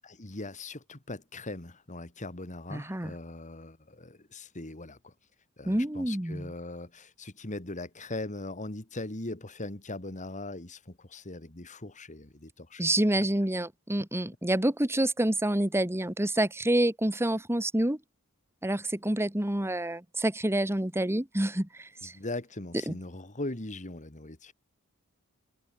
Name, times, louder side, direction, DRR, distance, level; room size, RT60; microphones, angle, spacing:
voice 1, 0.0-5.1 5.6-12.8 22.0-24.5, left 2 dB, 35° left, 2.3 m, -40 dB
voice 2, 2.7-3.1 5.7-6.5 12.8-18.0 18.6-22.1 22.9-23.0, right 1 dB, 10° right, 1.4 m, -28 dB
head